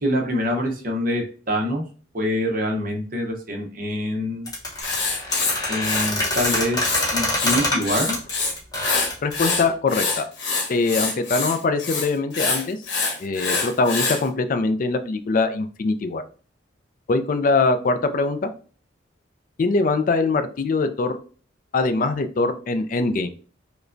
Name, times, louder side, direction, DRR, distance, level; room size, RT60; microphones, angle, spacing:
voice 1, 0.0-1.8 2.1-4.5 5.7-6.8 7.1-8.2, left 1 dB, 45° right, 1 dB, 0.8 m, -25 dB
sound 1, 4.5-9.7, left 1 dB, 20° left, 0.8 m, -25 dB
Writing, 4.8-7.0 7.3-8.5 8.8-14.2, left 4 dB, 65° left, 1.0 m, -25 dB
voice 2, 9.2-10.3 10.7-12.8 13.2-16.2 17.1-18.5 19.6-21.2 21.7-23.3, left 3 dB, 45° left, 9 dB, 0.4 m, -22 dB
4.9 x 2.2 x 2.5 m, 0.40 s
head